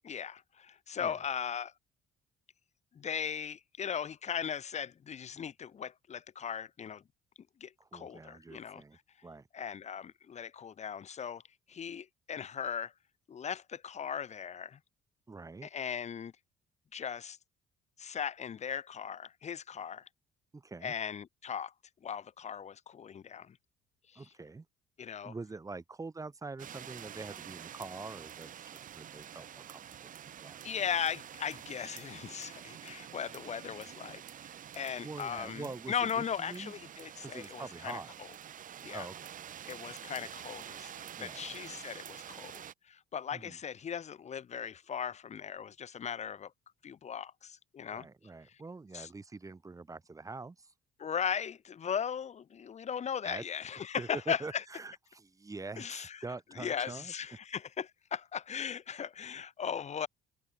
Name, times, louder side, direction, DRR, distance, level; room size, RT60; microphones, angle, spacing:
voice 1, 0.0-1.7 2.9-7.0 7.6-8.8 9.5-11.4 11.7-12.9 13.3-14.8 15.6-16.3 16.9-17.4 18.0-20.1 20.8-21.7 22.0-23.6 24.1-24.2 25.0-25.3 30.6-34.5 34.7-38.3 38.8-39.1 39.7-46.5 46.8-48.1 48.9-49.1 51.0-54.6 55.8-56.2 56.5-60.1, left 7 dB, 40° left, 3.0 m, -38 dB
voice 2, 7.8-9.5 15.3-15.7 20.5-20.9 24.2-24.7 25.2-30.6 34.8-36.7 37.2-38.1 38.9-39.3 41.2-41.5 43.3-43.6 47.9-50.7 53.2-53.4 54.0-57.1, right 3 dB, 20° right, 4.1 m, -45 dB
sound 1, 26.6-42.7, right 9 dB, 50° right, 3.4 m, -48 dB
cardioid pair, 110°, 17 cm